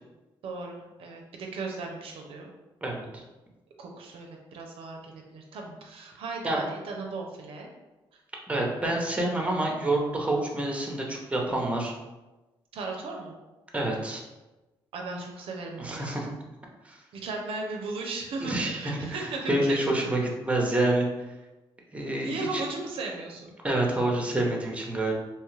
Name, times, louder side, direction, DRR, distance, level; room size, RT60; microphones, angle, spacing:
voice 1, 0.4-2.5 3.8-7.7 12.7-13.3 14.9-16.3 17.1-20.3 22.0-23.6, right 3 dB, 70° right, 1 dB, 0.5 m, -36 dB
voice 2, 2.8-3.2 6.4-6.6 8.5-11.9 13.7-14.2 15.8-16.3 16.8-17.0 18.4-18.8 19.1-21.1 21.9-22.6 23.6-25.1, right 1 dB, 15° right, 0 dB, 0.7 m, -27 dB
2.8 x 2.3 x 3.2 m, 1.1 s
supercardioid pair, 65°, 10 cm